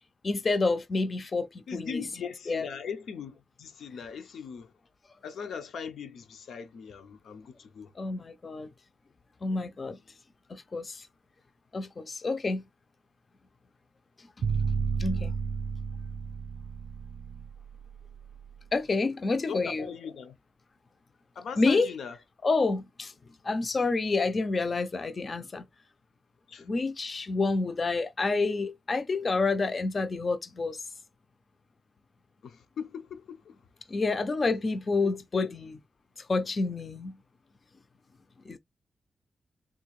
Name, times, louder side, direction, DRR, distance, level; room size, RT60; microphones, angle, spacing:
voice 1, 0.2-2.0 2.5-2.7 8.0-8.7 9.4-10.0 10.5-11.1 11.7-12.6 15.0-15.3 18.7-19.9 21.6-21.9 22.4-23.1 23.4-25.6 26.6-30.8 33.9-35.7 36.2-37.2 38.5-38.6, left 3 dB, 30° left, 0.3 m, -28 dB
voice 2, 1.7-4.7 5.2-7.9 19.5-20.3 21.4-22.2 26.5-26.7 32.4-33.6 35.0-35.5, left 6 dB, 90° left, 0.5 m, -39 dB
sound 1, 14.4-18.5, right 6 dB, 80° right, 0.4 m, -32 dB
3.6 x 2.4 x 3.0 m
wide cardioid pair, 175°, 0 cm